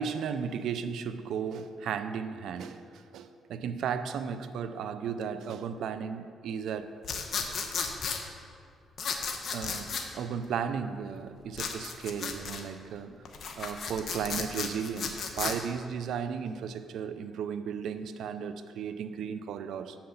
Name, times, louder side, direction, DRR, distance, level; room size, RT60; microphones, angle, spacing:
voice 1, 0.0-6.9 9.5-13.2 13.5-20.0, right 7 dB, 75° right, 11 dB, 0.5 m, -35 dB
sound 1, 7.0-8.2 9.0-10.1 11.5-12.6 13.3-15.6, left 5 dB, 55° left, 1.0 m, -34 dB
7.6 x 5.8 x 7.0 m, 2.3 s
cardioid pair, 90°, 0 cm